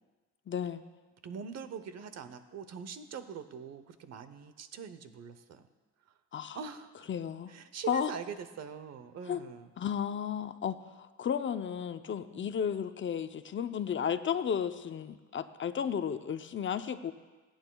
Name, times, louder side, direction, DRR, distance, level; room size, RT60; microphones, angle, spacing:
voice 1, 0.5-0.8 6.3-6.6 7.1-7.5 7.9-8.1 9.3-9.4 9.8-17.1, left 8 dB, 40° left, 10 dB, 0.6 m, -33 dB
voice 2, 1.2-5.7 6.1-6.2 6.5-7.1 7.5-9.7 12.3-12.5, right 6 dB, 60° right, 11 dB, 0.9 m, -43 dB
20.5 x 8.9 x 2.3 m, 1.3 s
cardioid pair, 90°, 30 cm